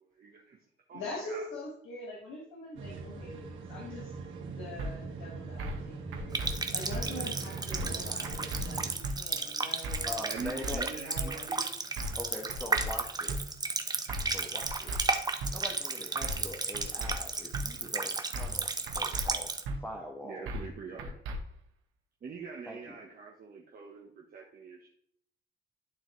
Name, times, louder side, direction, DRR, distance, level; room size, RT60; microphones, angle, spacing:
voice 1, 0.2-0.6 0.9-1.5 10.2-11.7 20.2-21.1 22.2-24.9, right 5 dB, 45° right, -1 dB, 1.1 m, -44 dB
voice 2, 0.9-4.1 4.5-11.5 11.8-11.9, left 2 dB, 85° left, -3 dB, 1.8 m, -44 dB
sound 1, 2.8-8.9, right 4 dB, 70° right, 1.8 m, -41 dB
sound 2, 4.8-4.9 5.6-5.8 6.1-6.5 6.9-7.0 7.7-8.0 8.2-8.6 9.0-9.2 9.8-10.1 10.4-10.8 11.2-11.3 12.0-12.2 12.5-12.9 13.3-13.4 14.1-14.4 14.6-15.0 15.4-15.5 16.2-16.5 16.7-17.1 17.5-17.7 18.3-18.6 18.9-19.3 19.7-19.8 20.5-20.7 21.0-21.4, right 1 dB, 90° right, 1.2 m, -36 dB
Water tap faucet, 6.3-19.6, right 3 dB, 20° right, 0.7 m, -34 dB
voice 3, 9.8-10.9 12.1-13.4 14.3-15.0 15.5-19.5 19.8-20.5 20.9-21.1 22.6-22.9, left 1 dB, 10° left, -1 dB, 1.4 m, -42 dB
11.5 x 3.9 x 3.2 m, 0.67 s
cardioid pair, 90°, 20 cm